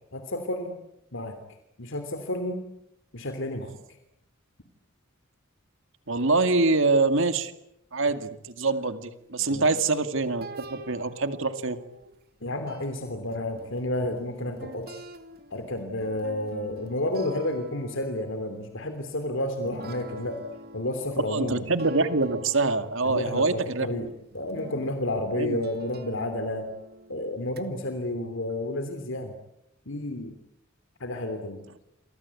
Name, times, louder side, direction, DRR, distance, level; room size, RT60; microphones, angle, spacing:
voice 1, 0.1-0.8 1.1-1.4 1.8-2.6 3.1-3.7 9.5-9.7 12.4-15.0 15.5-20.4 20.7-21.7 23.0-24.1 24.3-26.7 27.1-29.3 29.8-30.3 31.0-31.6, left 1 dB, 65° left, 7 dB, 3.2 m, -31 dB
voice 2, 6.1-7.5 7.9-11.8 21.3-23.9 25.4-25.6, right 3 dB, 65° right, 10 dB, 2.2 m, -25 dB
sound 1, 9.1-12.4 12.7-23.0 23.7-23.8 24.3-27.6, right 2 dB, 50° right, 2.5 m, -47 dB
29.0 x 24.5 x 8.5 m, 0.82 s
head